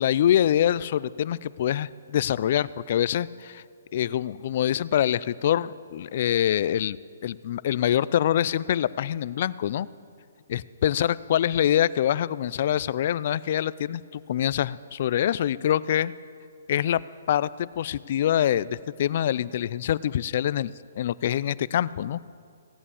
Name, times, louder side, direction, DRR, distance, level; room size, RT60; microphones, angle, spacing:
voice 1, 0.0-3.6 3.9-7.0 7.2-9.9 10.5-16.1 16.7-17.0 17.3-22.2, left 11 dB, 50° left, 19 dB, 0.3 m, -25 dB
16.5 x 8.5 x 7.1 m, 2.3 s
hypercardioid pair, 145°, 0 cm